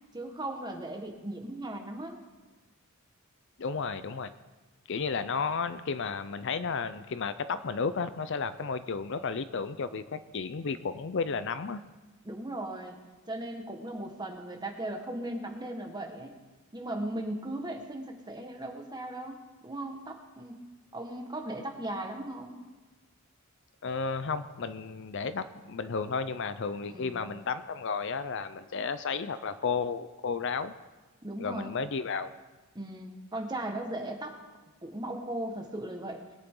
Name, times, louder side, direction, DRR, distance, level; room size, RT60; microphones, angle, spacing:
voice 1, 0.1-2.2 12.2-12.9 13.2-16.3 16.7-20.6 20.9-22.6 26.8-27.3 31.2-31.7 32.7-34.4 34.8-36.2, right 1 dB, 20° right, 3 dB, 1.5 m, -37 dB
voice 2, 3.6-4.3 4.9-11.8 23.8-30.7 31.4-32.3, left 5 dB, 60° left, 13 dB, 0.5 m, -33 dB
21.0 x 9.6 x 3.8 m, 1.2 s
head